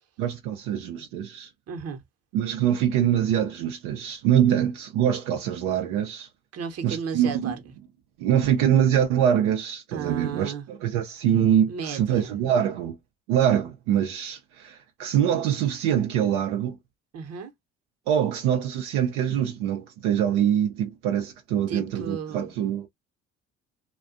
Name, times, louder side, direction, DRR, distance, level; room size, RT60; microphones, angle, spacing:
voice 1, 0.2-1.5 2.3-6.3 6.8-7.6 8.2-13.0 13.3-16.8 18.1-22.9, right 9 dB, 85° right, 0.6 m, -24 dB
voice 2, 1.7-2.0 6.5-7.6 9.9-10.6 11.7-12.3 17.1-17.5 21.7-22.5, right 6 dB, 55° right, 0.9 m, -34 dB
2.4 x 2.2 x 2.5 m
supercardioid pair, 60°, 30 cm